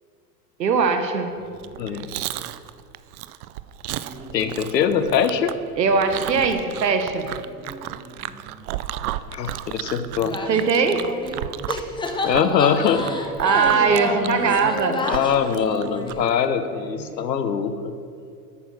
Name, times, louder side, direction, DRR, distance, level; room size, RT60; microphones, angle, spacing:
voice 1, 0.6-1.3 1.9-2.0 5.7-7.3 10.5-11.1 13.4-15.0, right 5 dB, 90° right, 7 dB, 1.1 m, -20 dB
sound 1, 1.2-2.8 3.2-3.3 3.9-5.8 6.0-6.2 6.6-6.7 7.0-9.8 10.1-12.2 12.4-12.5 12.8-15.2 15.6-17.5, right 2 dB, 20° right, 2.3 m, -43 dB
Chewing mastication, 1.5-16.3, right 14 dB, 65° right, 0.5 m, -34 dB
voice 2, 4.3-5.5 9.3-10.4 12.2-13.0 14.2-14.6 15.0-17.9, left 7 dB, 85° left, 10 dB, 0.9 m, -22 dB
sound 2, 10.3-11.4 11.7-16.4, left 2 dB, 10° left, 0.8 m, -30 dB
8.8 x 6.1 x 6.4 m, 2.3 s
hypercardioid pair, 100°, 49 cm